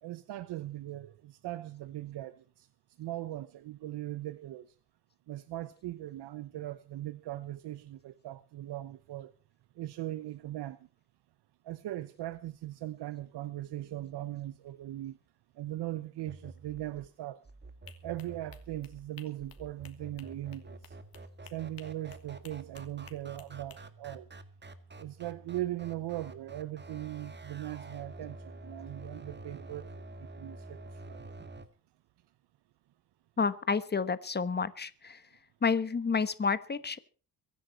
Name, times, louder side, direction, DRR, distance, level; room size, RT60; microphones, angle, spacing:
voice 1, 0.0-2.7 3.0-4.8 5.3-9.3 9.7-10.9 11.6-15.2 15.5-17.4 18.0-21.0 21.4-24.3 25.0-31.3, right 14 dB, 85° right, 0.9 m, -39 dB
sound 1, 16.3-31.7, right 2 dB, 25° right, 1.8 m, -48 dB
sound 2, 17.9-23.8, left 8 dB, 60° left, 2.7 m, -56 dB
voice 2, 33.4-35.2 35.6-37.0, left 5 dB, 25° left, 1.3 m, -30 dB
23.5 x 10.5 x 4.3 m
cardioid pair, 115°, 40 cm